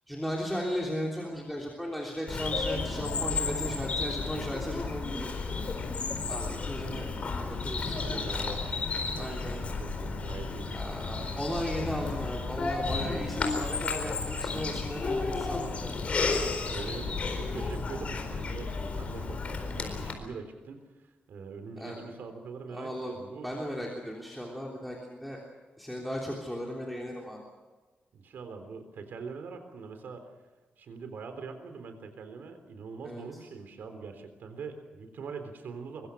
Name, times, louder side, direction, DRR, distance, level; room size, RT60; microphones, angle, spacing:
voice 1, 0.1-5.8 6.3-7.1 7.6-8.3 9.2-9.6 10.7-16.4 21.8-22.0 22.7-23.2 23.4-25.4 25.8-27.4 33.0-33.4, equal, ahead, -2 dB, 3.4 m, -36 dB
Bird vocalization bird call bird song, 2.3-20.1, left 4 dB, 40° left, 4.2 m, -32 dB
voice 2, 8.0-8.7 9.0-10.8 16.7-23.5 28.1-30.3 30.8-36.1, right 5 dB, 80° right, 7 dB, 3.6 m, -43 dB
24.5 x 24.0 x 6.4 m, 1.3 s
wide cardioid pair, 180°, 3 cm